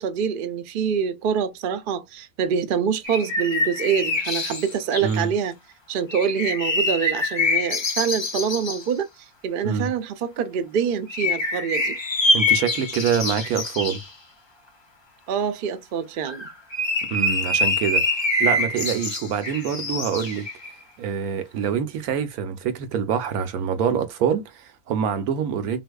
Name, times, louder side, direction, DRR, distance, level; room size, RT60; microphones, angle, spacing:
voice 1, 0.0-5.5 5.9-9.1 9.4-12.0 15.3-16.4, right 7 dB, 55° right, 0.6 m, -25 dB
sound 1, 3.0-5.2 6.1-8.8 11.1-14.0 16.3-20.8, left 2 dB, 35° left, 0.4 m, -25 dB
voice 2, 12.3-14.0 17.1-20.5 21.0-25.8, right 7 dB, 75° right, 1.2 m, -25 dB
4.0 x 2.6 x 2.2 m
omnidirectional pair, 1.6 m